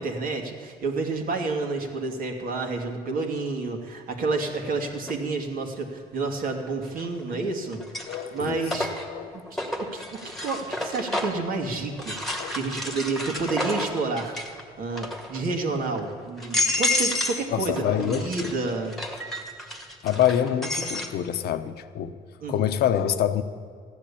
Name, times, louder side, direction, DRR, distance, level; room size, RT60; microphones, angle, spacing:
voice 1, 0.0-8.9 9.3-14.4 14.8-19.0 22.4-22.7, right 3 dB, 55° right, 2 dB, 2.5 m, -30 dB
sound 1, 5.1-5.2 6.9-7.3 7.7-11.5 12.0-14.6 14.9-15.4 15.9-16.0 16.4-17.5 17.7-21.1, left 1 dB, ahead, 1.9 m, -30 dB
voice 2, 8.1-8.6 9.1-9.4 12.4-12.6 17.5-18.5 20.0-22.1 22.5-23.4, left 10 dB, 70° left, 10 dB, 0.9 m, -26 dB
15.0 x 10.5 x 8.5 m, 2.1 s
cardioid pair, 110°, 17 cm